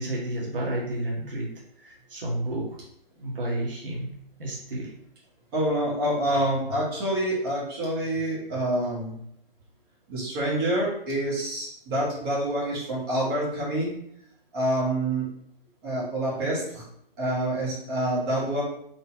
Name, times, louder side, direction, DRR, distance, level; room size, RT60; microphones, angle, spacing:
voice 1, 0.0-1.5 1.8-2.8 3.2-4.1 4.4-4.9, right 1 dB, 65° right, -3 dB, 1.7 m, -31 dB
voice 2, 5.5-9.2 10.1-13.9 14.5-15.3 15.8-16.8 17.2-18.6, right 1 dB, 25° right, -5 dB, 1.6 m, -27 dB
4.3 x 3.7 x 2.8 m, 0.71 s
figure-of-eight pair, 145°, 30 cm